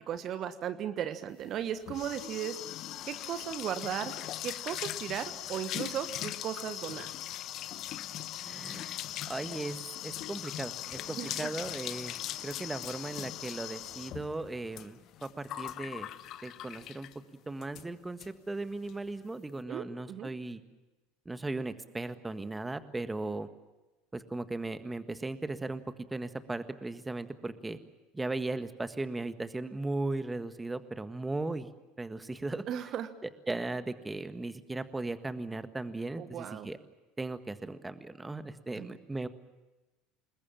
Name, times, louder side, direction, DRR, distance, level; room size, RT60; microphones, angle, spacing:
voice 1, 0.1-2.6 3.1-4.1 4.4-7.1 11.2-11.5 19.7-20.3 32.7-33.1 36.2-36.7 38.7-38.9, right 9 dB, 45° right, 11 dB, 1.3 m, -36 dB
sound 1, 1.5-17.2 17.6-17.9 18.2-18.3 18.6-18.9, left 13 dB, 50° left, 1.0 m, -40 dB
voice 2, 8.4-9.0 9.3-12.1 12.4-16.1 16.4-17.1 17.5-20.6 21.2-23.5 24.1-25.8 26.1-27.8 28.1-31.7 32.0-32.6 33.5-36.8 37.2-39.3, right 2 dB, 10° right, 10 dB, 1.7 m, -37 dB
28.0 x 21.0 x 7.4 m, 1.1 s
figure-of-eight pair, 70°, 0 cm